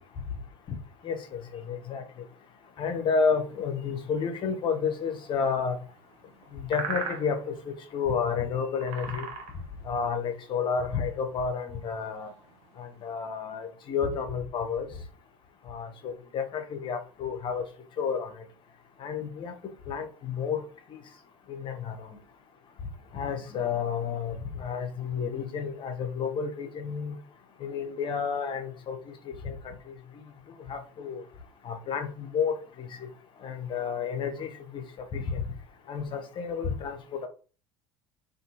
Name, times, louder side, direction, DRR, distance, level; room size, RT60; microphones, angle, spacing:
voice 1, 1.0-2.0 2.8-5.8 6.5-9.3 9.8-12.3 12.8-14.9 15.7-17.6 18.0-18.3 19.0-19.5 19.9-20.6 20.9-21.0 21.5-22.1 23.1-27.2 27.6-29.0 29.3-29.9 30.7-31.2 31.6-32.9 33.4-34.8 35.1-35.4 35.9-37.3, left 6 dB, 35° left, 0.7 m, -31 dB
sound 1, 3.5-13.1, right 6 dB, 55° right, 0.6 m, -42 dB
2.5 x 2.4 x 2.8 m
figure-of-eight pair, 65°, 14 cm